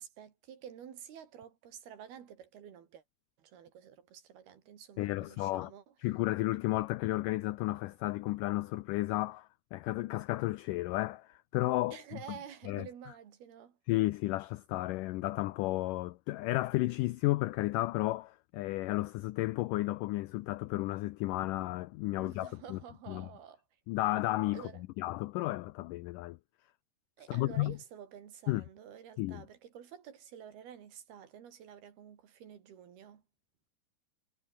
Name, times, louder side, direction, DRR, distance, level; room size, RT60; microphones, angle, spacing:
voice 1, 0.0-3.0 3.4-5.8 11.9-13.8 22.2-23.6 24.5-24.8 27.2-33.2, right 9 dB, 80° right, 4.7 m, -50 dB
voice 2, 5.0-5.7 6.0-12.2 12.7-12.9 13.9-22.8 23.1-23.3 23.9-24.6 25.0-26.4 27.3-27.8 28.5-28.6 29.2-29.4, left 18 dB, 85° left, 1.8 m, -33 dB
omnidirectional pair, 4.4 m